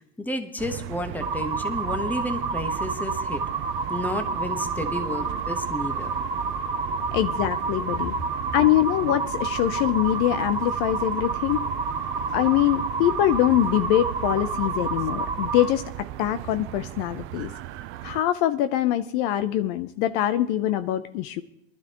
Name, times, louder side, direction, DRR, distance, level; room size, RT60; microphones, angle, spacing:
voice 1, 0.2-3.4 3.9-6.1, left 1 dB, 5° left, 7 dB, 1.3 m, -31 dB
sound 1, 0.6-18.2, right 13 dB, 40° right, 0.6 m, -37 dB
sound 2, 1.2-15.7, right 4 dB, 15° right, 2.6 m, -29 dB
voice 2, 7.1-8.1 8.5-11.6 12.3-17.5 18.0-21.4, left 13 dB, 55° left, 12 dB, 0.7 m, -23 dB
20.0 x 12.5 x 3.0 m, 0.79 s
supercardioid pair, 120°, 31 cm